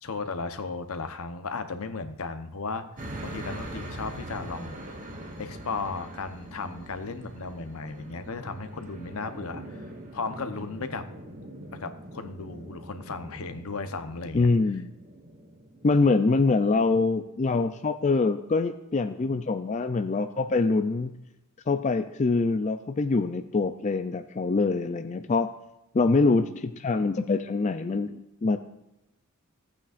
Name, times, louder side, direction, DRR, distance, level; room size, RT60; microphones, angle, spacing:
voice 1, 0.0-2.8 3.2-5.0 5.4-9.9 10.1-11.0 11.8-14.5, left 4 dB, 75° left, 9 dB, 0.9 m, -35 dB
sound 1, 3.0-17.2, right 1 dB, 35° right, 1.3 m, -42 dB
voice 2, 14.3-14.9 15.8-21.1 21.7-25.5 25.9-28.6, left 3 dB, 35° left, 8 dB, 0.4 m, -24 dB
15.0 x 8.6 x 2.5 m, 0.93 s
head